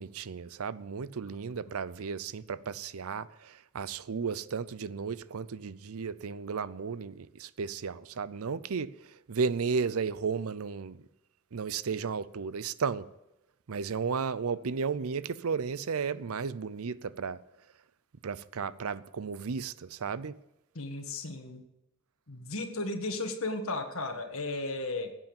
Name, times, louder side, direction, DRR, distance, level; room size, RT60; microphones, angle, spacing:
voice 1, 0.0-8.9 9.3-11.0 11.5-13.1 13.7-17.4 18.2-20.4, right 5 dB, 70° right, 0.5 m, -34 dB
voice 2, 20.8-21.6 22.3-25.2, left 2 dB, 65° left, 1.7 m, -35 dB
14.0 x 8.4 x 7.1 m
head